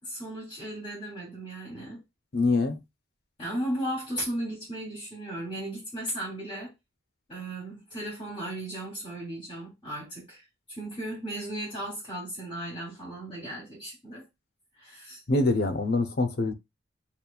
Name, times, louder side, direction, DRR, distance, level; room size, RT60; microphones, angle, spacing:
voice 1, 0.0-2.0 3.4-6.7 7.3-10.4 10.7-14.2 14.8-15.2, right 1 dB, 30° left, 3.0 m, -36 dB
voice 2, 2.3-2.8 15.3-16.5, left 2 dB, 55° left, 0.6 m, -24 dB
7.0 x 2.4 x 2.3 m
head